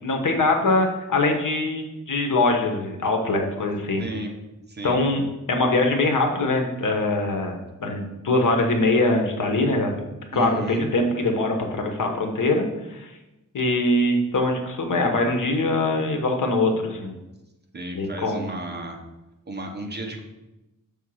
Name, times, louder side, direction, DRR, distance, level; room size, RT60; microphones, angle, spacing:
voice 1, 0.0-4.0 4.8-5.2 5.5-10.0 10.3-12.6 12.9-13.1 13.5-17.1 17.9-18.4, left 2 dB, 70° left, 3 dB, 1.1 m, -23 dB
voice 2, 4.0-4.3 4.7-5.0 10.3-10.9 17.7-19.0 19.5-20.2, right 1 dB, 30° right, 2 dB, 0.9 m, -33 dB
6.5 x 3.7 x 6.2 m, 0.98 s
wide cardioid pair, 150°, 32 cm